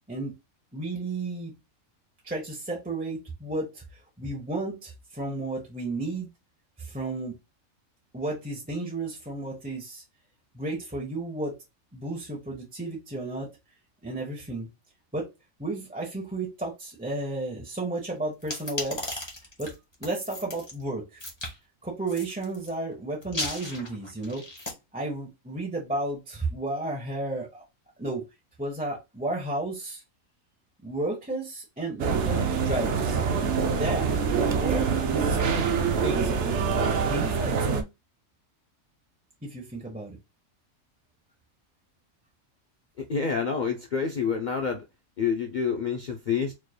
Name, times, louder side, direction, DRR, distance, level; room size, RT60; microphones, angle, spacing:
voice 1, 0.7-1.5 2.2-3.8 4.2-6.3 6.8-7.4 8.1-10.0 10.5-11.5 11.9-13.5 14.0-14.7 15.1-15.3 15.6-19.3 19.6-19.7 20.0-21.2 21.8-24.4 24.9-27.6 28.0-28.2 28.6-30.0 30.8-33.2 33.7-34.2 34.4-35.4 35.8-36.6 37.1-37.8 39.4-40.2, right 2 dB, 5° right, 0.9 m, -33 dB
sound 1, 18.4-20.7 21.2-21.5 22.1-22.7 23.2-24.7, left 2 dB, 20° left, 1.1 m, -36 dB
sound 2, 32.0-37.8, right 6 dB, 60° right, 0.8 m, -25 dB
voice 2, 43.1-44.8 45.2-46.5, left 6 dB, 60° left, 0.4 m, -27 dB
4.6 x 3.2 x 2.2 m
omnidirectional pair, 1.5 m